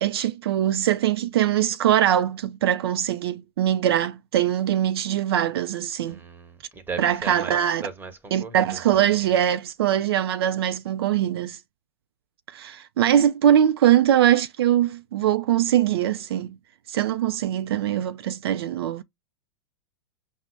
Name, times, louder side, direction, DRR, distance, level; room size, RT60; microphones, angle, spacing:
voice 1, 0.0-6.2 7.0-7.8 8.3-11.6 12.5-16.6 16.9-19.0, right 11 dB, 65° right, 0.4 m, -22 dB
voice 2, 6.1-9.5, right 4 dB, 15° right, 1.1 m, -38 dB
5.8 x 2.1 x 3.2 m
hypercardioid pair, 105°, 14 cm